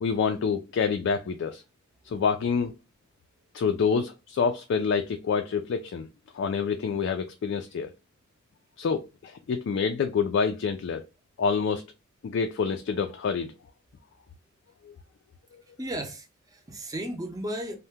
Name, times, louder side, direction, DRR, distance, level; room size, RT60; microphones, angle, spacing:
voice 1, 0.0-1.6 2.0-2.7 3.5-6.1 6.3-7.9 8.8-11.0 11.4-11.8 12.2-13.5 14.8-14.9, left 5 dB, 60° left, 0.3 m, -27 dB
voice 2, 15.8-17.8, right 1 dB, 15° right, 0.5 m, -35 dB
2.7 x 2.1 x 3.4 m
head